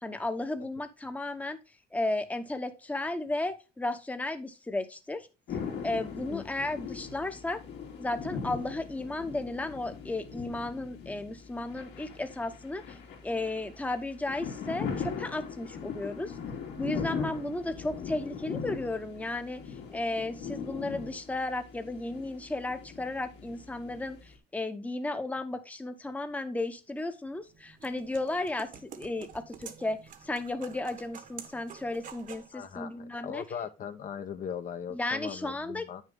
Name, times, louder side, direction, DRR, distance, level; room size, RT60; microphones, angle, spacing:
voice 1, 0.0-1.6 1.9-5.3 5.8-7.6 8.0-13.0 13.2-16.3 16.8-19.6 19.9-24.2 24.5-28.7 28.9-30.0 30.2-33.4 34.9-35.9, left 2 dB, 10° left, 1.0 m, -34 dB
sound 1, 5.5-24.3, left 6 dB, 80° left, 2.8 m, -40 dB
sound 2, 27.3-32.5, right 7 dB, 50° right, 1.3 m, -48 dB
voice 2, 32.5-36.0, left 8 dB, 50° left, 1.1 m, -39 dB
9.0 x 6.5 x 3.6 m
cardioid pair, 110°, 17 cm